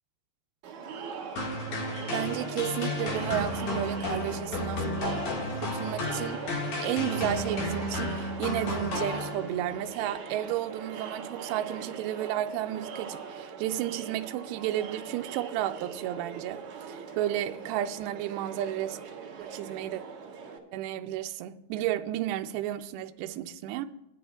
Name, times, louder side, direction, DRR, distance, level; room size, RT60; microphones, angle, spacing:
Crowd, 0.6-20.6, right 6 dB, 55° right, 2.6 m, -41 dB
sound 1, 1.4-9.7, left 2 dB, 55° left, 2.7 m, -32 dB
voice 1, 2.1-5.2 5.5-6.4 6.8-19.0 19.4-20.0 20.7-23.9, right 12 dB, 85° right, 2.7 m, -32 dB
19.5 x 10.5 x 2.2 m
omnidirectional pair, 4.9 m